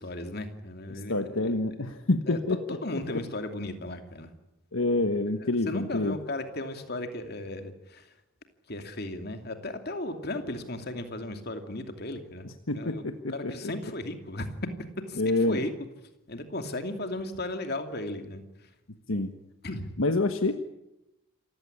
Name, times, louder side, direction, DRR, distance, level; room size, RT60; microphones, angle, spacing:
voice 1, 0.0-1.5 2.3-2.4 2.7-4.3 5.6-8.1 8.7-12.5 12.7-13.0 13.3-14.5 15.1-15.7 16.3-18.7 19.6-20.0, left 1 dB, 50° left, 7 dB, 2.6 m, -36 dB
voice 2, 0.9-2.6 3.1-3.2 4.7-6.2 12.4-13.5 15.2-15.6 19.1-19.4 20.0-20.5, left 2 dB, 80° left, 8 dB, 1.4 m, -27 dB
27.5 x 16.0 x 9.9 m, 0.90 s
head